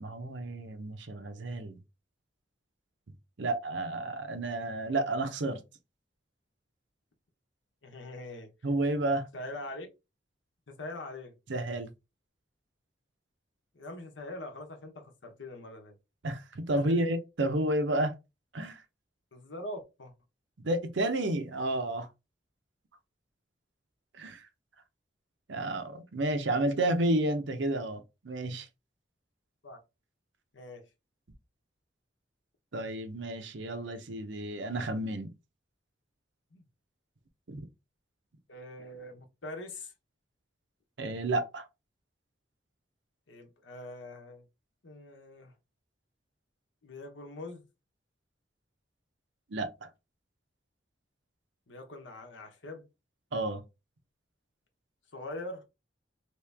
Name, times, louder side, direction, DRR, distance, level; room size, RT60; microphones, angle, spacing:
voice 1, 0.0-1.8 3.4-5.6 8.6-9.3 11.5-11.9 16.2-18.1 18.5-18.8 20.6-22.1 24.1-24.5 25.5-28.7 32.7-35.3 37.5-37.6 41.0-41.6 49.5-49.9 53.3-53.6, right 1 dB, 80° right, 0.7 m, -31 dB
voice 2, 7.8-8.5 9.3-9.9 10.7-11.3 13.7-15.9 16.9-17.0 19.3-20.1 29.6-29.8 30.5-30.9 36.5-36.6 38.5-39.9 43.3-44.4 44.8-45.5 46.8-47.6 51.7-52.9 55.1-55.6, left 1 dB, 85° left, 1.0 m, -43 dB
3.0 x 2.9 x 3.4 m
head